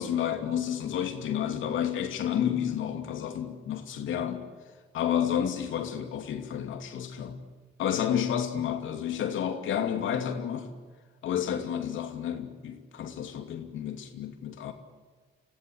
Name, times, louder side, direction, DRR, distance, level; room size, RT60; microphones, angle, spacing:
voice 1, 0.0-4.5 4.9-7.4 7.8-10.7 11.2-14.7, left 9 dB, 80° left, 2.7 m, -30 dB
28.5 x 16.0 x 9.9 m
cardioid pair, 90°, 20 cm